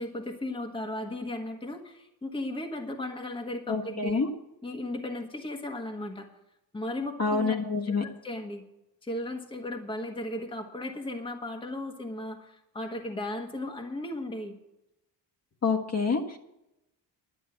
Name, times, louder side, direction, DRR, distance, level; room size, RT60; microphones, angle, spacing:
voice 1, 0.0-4.2 4.6-6.3 6.7-7.6 7.9-8.6 9.0-14.6, left 1 dB, 10° left, 3 dB, 1.3 m, -36 dB
voice 2, 3.7-4.3 7.2-8.0 15.6-16.4, left 4 dB, 35° left, 1 dB, 1.4 m, -27 dB
11.5 x 9.1 x 7.3 m, 0.89 s
cardioid pair, 135°, 44 cm